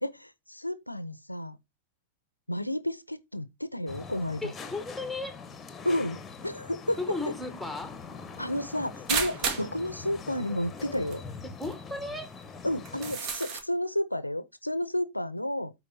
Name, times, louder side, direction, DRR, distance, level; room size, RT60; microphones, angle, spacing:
voice 1, 0.0-1.6 2.5-4.5 5.8-7.0 8.4-11.2 12.6-15.7, left 1 dB, 85° left, 0.6 m, -31 dB
sound 1, 3.9-13.2, left 5 dB, 20° left, 1.2 m, -43 dB
voice 2, 4.4-5.4 7.0-8.0 11.4-12.3, left 2 dB, ahead, 1.5 m, -35 dB
sound 2, 9.1-9.7 10.8-10.9 11.1-11.2 11.7-11.8 12.8-13.6, right 5 dB, 40° right, 1.6 m, -31 dB
12.0 x 4.4 x 2.8 m
figure-of-eight pair, 90°, 0 cm